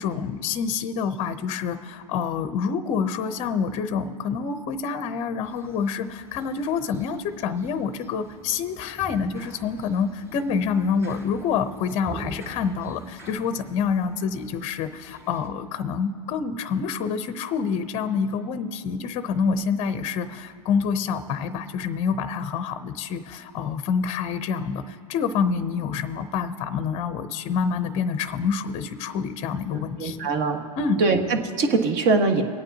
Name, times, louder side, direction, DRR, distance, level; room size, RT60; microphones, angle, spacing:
voice 1, 0.0-30.2 30.8-31.0, left 6 dB, 30° left, 11 dB, 0.6 m, -27 dB
sound 1, 5.4-15.5, right 1 dB, 15° right, 2.7 m, -45 dB
voice 2, 30.0-30.6 31.0-32.4, right 3 dB, 45° right, 5 dB, 1.5 m, -22 dB
25.0 x 8.9 x 2.8 m, 2.6 s
hypercardioid pair, 115°, 20 cm